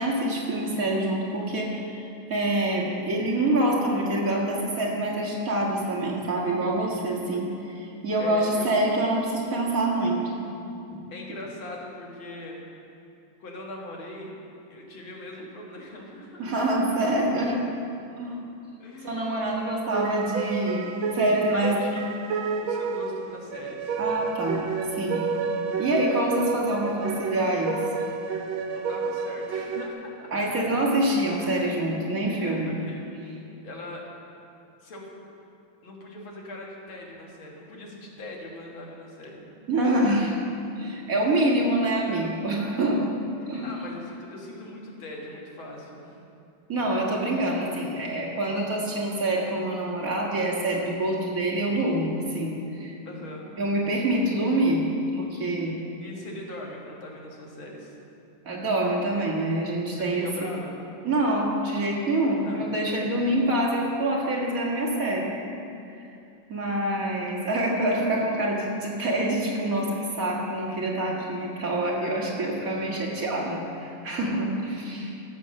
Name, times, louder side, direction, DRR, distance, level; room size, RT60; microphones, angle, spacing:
voice 1, 0.0-10.5 10.9-11.0 16.4-17.6 18.2-18.5 19.0-21.8 24.0-24.6 24.9-25.2 25.8-27.8 30.3-32.8 39.7-40.3 40.8-43.0 43.5-43.7 46.7-52.9 53.6-54.8 55.1-55.7 58.5-60.5 61.0-65.3 65.9-66.0 66.5-75.2, right 1 dB, 45° right, -3 dB, 2.0 m, -26 dB
voice 2, 8.2-8.8 11.1-12.6 13.4-14.3 14.7-16.5 18.8-19.5 21.5-22.3 22.6-24.0 28.7-30.3 32.4-33.1 33.6-34.1 34.8-35.1 35.8-39.4 43.4-46.2 53.1-53.5 56.0-58.0 60.0-60.8 62.4-62.7 72.7-73.0, left 1 dB, 90° left, -2 dB, 2.6 m, -40 dB
sound 1, 19.9-29.9, right 5 dB, 85° right, 1.6 m, -30 dB
13.5 x 7.7 x 6.4 m, 2.7 s
omnidirectional pair, 2.1 m